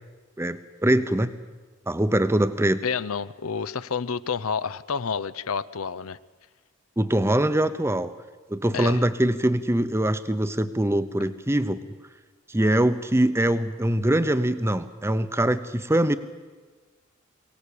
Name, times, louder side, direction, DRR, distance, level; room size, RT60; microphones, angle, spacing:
voice 1, 0.4-1.3 1.9-2.8 7.0-8.1 8.5-11.8 12.5-16.2, right 1 dB, 10° right, 12 dB, 0.8 m, -23 dB
voice 2, 2.8-6.2 8.7-9.0, left 6 dB, 75° left, 15 dB, 0.7 m, -29 dB
23.0 x 18.0 x 8.5 m, 1.3 s
head